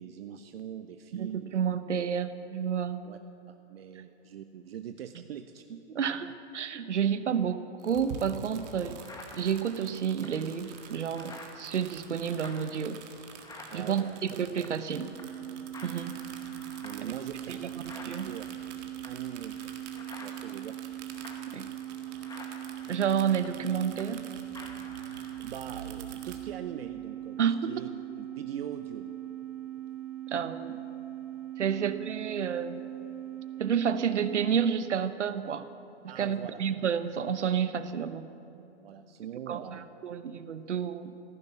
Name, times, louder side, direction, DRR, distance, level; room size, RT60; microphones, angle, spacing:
voice 1, 0.0-1.6 3.0-3.2 3.5-5.6 13.7-14.2 16.8-17.7 18.2-18.5 19.0-19.6 19.9-20.8 25.4-27.9 28.2-29.1 31.7-31.8 36.1-36.6 38.8-39.9, right 9 dB, 60° right, 8 dB, 0.8 m, -42 dB
voice 2, 1.1-3.0 5.9-9.0 9.3-13.0 13.7-15.1 15.8-16.2 17.0-17.1 17.5-17.7 18.1-18.3 21.5-21.7 22.9-24.2 27.4-27.7 30.3-30.8 31.6-32.8 33.6-35.7 36.0-38.3 39.5-41.1, right 7 dB, 80° right, 12 dB, 0.9 m, -30 dB
sound 1, 7.8-26.4, right 7 dB, 40° right, 1.8 m, -48 dB
sound 2, 8.1-8.2 8.6-14.9 15.2-15.5 15.7-24.3 24.5-25.6, left 2 dB, 10° left, 1.5 m, -50 dB
sound 3, 15.0-34.6, right 12 dB, 10° right, 3.3 m, -40 dB
15.0 x 11.5 x 8.3 m, 2.9 s
hypercardioid pair, 130°, 35 cm